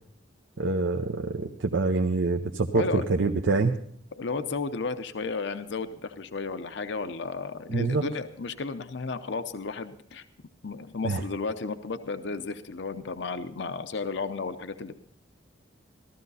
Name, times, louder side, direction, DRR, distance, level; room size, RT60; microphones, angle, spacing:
voice 1, 0.6-3.8 7.7-8.0 11.0-11.2, right 3 dB, 70° right, 3 dB, 0.7 m, -26 dB
voice 2, 2.7-3.1 4.1-10.2 10.6-14.9, left 4 dB, 60° left, 10 dB, 0.6 m, -33 dB
15.0 x 13.5 x 4.0 m, 0.62 s
head